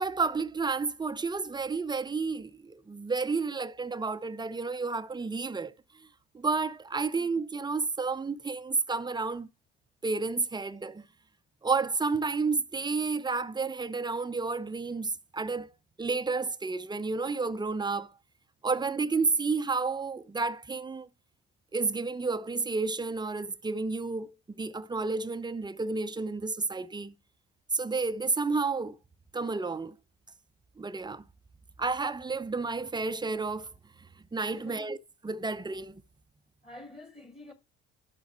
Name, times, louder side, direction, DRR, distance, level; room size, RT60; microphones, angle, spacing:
voice 1, 0.0-5.7 6.3-9.5 10.0-11.0 11.6-15.7 16.0-18.1 18.6-21.1 21.7-27.1 27.7-29.0 29.3-29.9 30.8-31.2 31.8-33.7 34.3-35.0 35.2-35.9, right 4 dB, 15° right, 0.7 m, -31 dB
voice 2, 34.5-34.9 36.6-37.5, left 1 dB, 15° left, 2.0 m, -48 dB
12.0 x 4.0 x 5.6 m
figure-of-eight pair, 55°, 34 cm